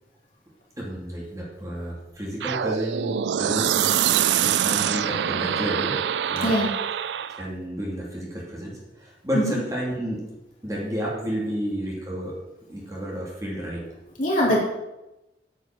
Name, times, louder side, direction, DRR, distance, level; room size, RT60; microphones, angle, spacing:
voice 1, 0.8-3.9 4.4-6.0 6.3-6.5 7.4-10.2 10.6-12.3 12.7-13.9, equal, 20° right, -4 dB, 2.9 m, -31 dB
sound 1, 2.4-7.5, right 9 dB, 80° right, 0.4 m, -24 dB
voice 2, 14.2-14.6, equal, 45° left, -4 dB, 3.6 m, -21 dB
9.3 x 6.7 x 7.6 m, 0.97 s
head